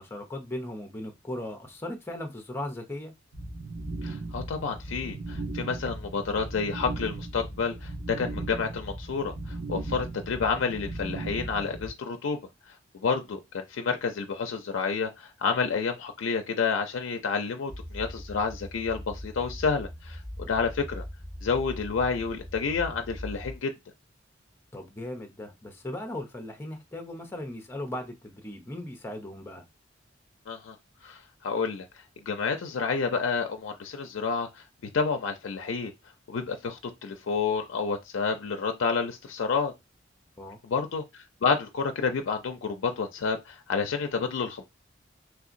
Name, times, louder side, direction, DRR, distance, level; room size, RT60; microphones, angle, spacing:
voice 1, 0.0-3.1 10.0-10.1 20.4-20.5 24.7-29.6 40.4-40.6, left 1 dB, 10° left, 0.6 m, -38 dB
sound 1, 3.3-11.9, right 2 dB, 85° right, 1.5 m, -37 dB
voice 2, 4.0-12.4 12.9-21.0 21.4-23.7 30.5-30.7 31.0-31.9 32.3-34.6 34.9-35.9 36.3-39.7 40.6-44.6, left 5 dB, 85° left, 0.4 m, -29 dB
sound 2, 17.7-23.6, equal, 45° right, 2.1 m, -40 dB
3.3 x 2.8 x 2.5 m
head